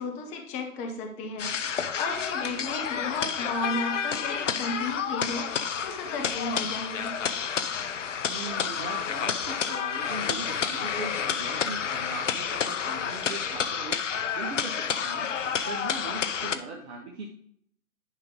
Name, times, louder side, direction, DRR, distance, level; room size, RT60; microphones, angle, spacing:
voice 1, 0.0-7.1, left 3 dB, 15° left, 3 dB, 0.9 m, -34 dB
sound 1, 1.4-16.6, left 7 dB, 60° left, 0.8 m, -30 dB
voice 2, 8.3-17.3, right 3 dB, 50° right, 0 dB, 1.5 m, -40 dB
11.0 x 5.2 x 3.7 m, 0.66 s
figure-of-eight pair, 125°, 42 cm